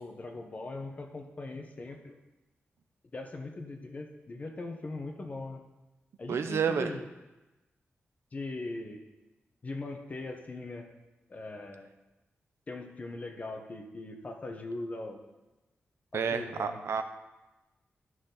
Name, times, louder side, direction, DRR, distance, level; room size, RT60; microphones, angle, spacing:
voice 1, 0.0-2.2 3.1-5.6 6.2-7.1 8.3-9.0 9.6-10.9 11.3-11.9 12.7-15.2 16.1-16.8, left 2 dB, 35° left, 3 dB, 1.1 m, -40 dB
voice 2, 6.3-6.9 16.1-17.0, right 6 dB, 80° right, 8 dB, 0.7 m, -30 dB
12.5 x 6.2 x 4.0 m, 1.1 s
wide cardioid pair, 145°, 4 cm